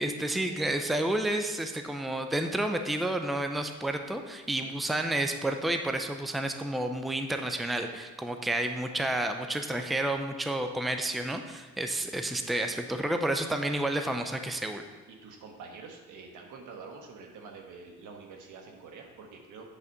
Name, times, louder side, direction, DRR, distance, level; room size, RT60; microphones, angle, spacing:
voice 1, 0.0-14.9, right 1 dB, ahead, 6 dB, 0.6 m, -30 dB
voice 2, 15.1-19.6, right 4 dB, 80° right, 2 dB, 1.4 m, -47 dB
8.6 x 4.1 x 6.6 m, 1.3 s
cardioid pair, 90°, 30 cm